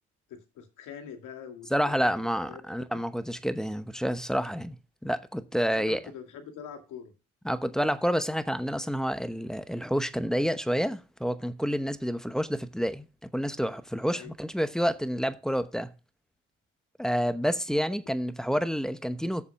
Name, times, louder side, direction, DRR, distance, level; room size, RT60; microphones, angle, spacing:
voice 1, 0.3-2.0 2.2-2.6 2.9-3.0 5.7-7.1 14.1-14.3, left 7 dB, 85° left, 2.1 m, -44 dB
voice 2, 1.7-4.8 5.0-6.0 7.4-13.1 13.3-15.9 17.0-19.4, equal, ahead, 0.9 m, -29 dB
6.9 x 6.8 x 5.8 m
cardioid pair, 90°, 30 cm